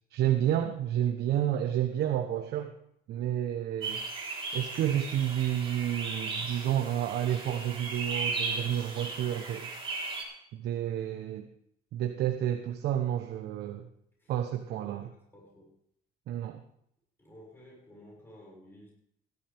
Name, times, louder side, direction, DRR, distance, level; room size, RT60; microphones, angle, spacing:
voice 1, 0.1-2.7 3.1-4.0 4.5-10.0 10.5-11.5 11.9-13.9 14.3-15.1 16.3-16.6, right 11 dB, 75° right, 5 dB, 1.1 m, -30 dB
voice 2, 3.1-3.4 14.2-14.3 14.8-15.8 17.2-18.9, equal, 15° left, -3 dB, 6.6 m, -54 dB
sound 1, 3.8-10.2, right 4 dB, 30° right, 4.2 m, -36 dB
16.5 x 12.5 x 3.6 m, 0.71 s
cardioid pair, 110°, 17 cm